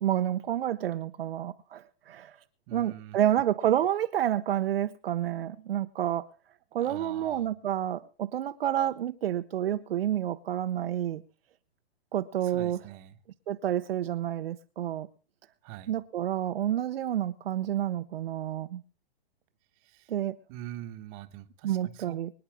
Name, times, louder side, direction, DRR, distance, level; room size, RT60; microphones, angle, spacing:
voice 1, 0.0-2.4 2.7-6.3 6.7-11.2 12.1-12.8 13.5-15.1 15.9-18.8 20.1-20.4 21.6-22.3, right 11 dB, 65° right, 0.9 m, -29 dB
voice 2, 2.7-3.2 6.8-7.5 12.4-13.2 15.6-15.9 19.8-20.1 20.5-22.1, right 13 dB, 35° right, 1.3 m, -44 dB
24.5 x 10.0 x 3.6 m
hypercardioid pair, 135°, 31 cm